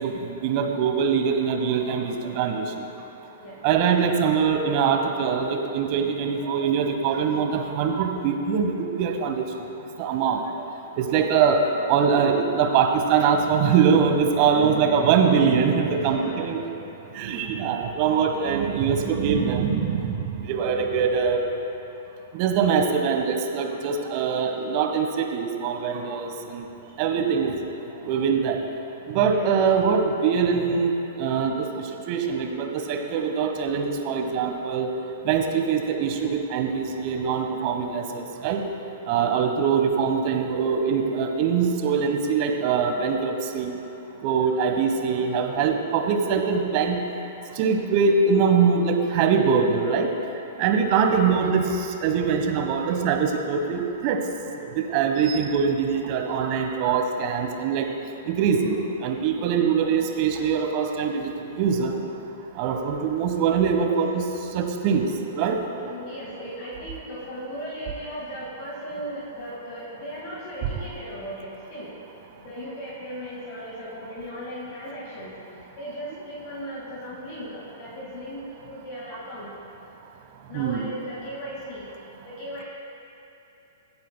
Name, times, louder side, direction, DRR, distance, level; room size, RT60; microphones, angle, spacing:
voice 1, 0.0-2.6 3.6-9.4 10.0-10.4 11.0-11.6 11.9-16.6 17.1-21.4 22.3-26.6 27.0-27.5 28.0-28.6 29.1-30.9 31.2-31.5 32.1-34.9 35.2-38.6 39.1-43.7 44.2-47.0 47.6-50.1 50.6-51.7 52.0-54.2 54.9-57.9 58.3-61.9 62.6-64.2 64.5-65.0 65.3-65.6 80.5-80.8, right 6 dB, 40° right, 4 dB, 1.3 m, -23 dB
voice 2, 14.4-15.0 15.8-16.4 29.2-29.5 38.8-39.7 44.6-45.5 59.3-60.0 61.9-62.0 62.6-63.0 63.8-64.1 65.7-71.9 72.4-79.5 80.5-81.9 82.2-82.6, equal, 45° left, -5 dB, 2.0 m, -38 dB
24.5 x 8.7 x 2.3 m, 2.9 s
figure-of-eight pair, 105°, 0 cm